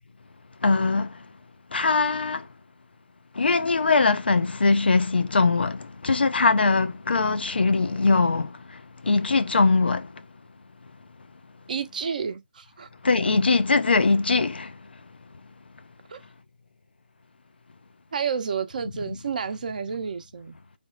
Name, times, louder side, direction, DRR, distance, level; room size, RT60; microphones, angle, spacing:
voice 1, 0.6-1.1 1.7-2.5 3.4-10.1 13.0-14.7, left 3 dB, 80° left, 0.5 m, -21 dB
voice 2, 11.7-12.9 16.1-16.2 18.1-20.6, right 6 dB, 55° right, 0.7 m, -30 dB
3.4 x 2.0 x 3.7 m
figure-of-eight pair, 155°, 5 cm